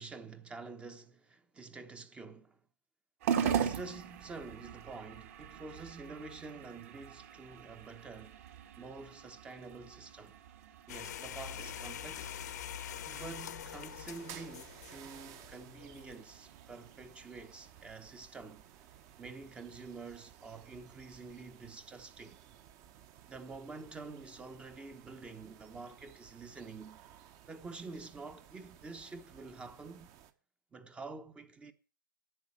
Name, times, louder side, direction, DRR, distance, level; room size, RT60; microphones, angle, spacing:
voice 1, 0.0-2.6 3.4-8.4 8.8-10.4 10.9-12.4 13.0-18.7 19.2-22.4 23.3-27.0 27.5-30.1 30.7-31.7, right 4 dB, 10° right, 1.0 m, -48 dB
sound 1, 3.2-21.8, right 8 dB, 45° right, 2.0 m, -42 dB
sound 2, 10.9-16.1, left 10 dB, 55° left, 1.0 m, -45 dB
sound 3, 11.4-30.3, right 10 dB, 30° right, 1.2 m, -57 dB
11.0 x 8.5 x 7.5 m
hypercardioid pair, 130°, 11 cm